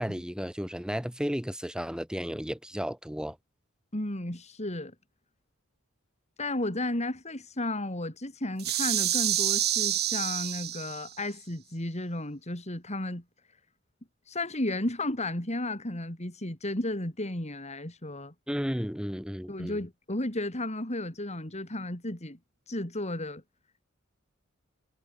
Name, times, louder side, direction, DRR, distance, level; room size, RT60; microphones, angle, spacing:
voice 1, 0.0-3.4 18.5-19.8, equal, 5° right, 2.2 m, -33 dB
voice 2, 3.9-4.9 6.4-13.2 14.3-18.3 19.5-22.4 22.7-23.4, left 1 dB, 30° left, 3.8 m, -33 dB
sound 1, 8.6-11.2, right 13 dB, 50° right, 2.1 m, -28 dB
head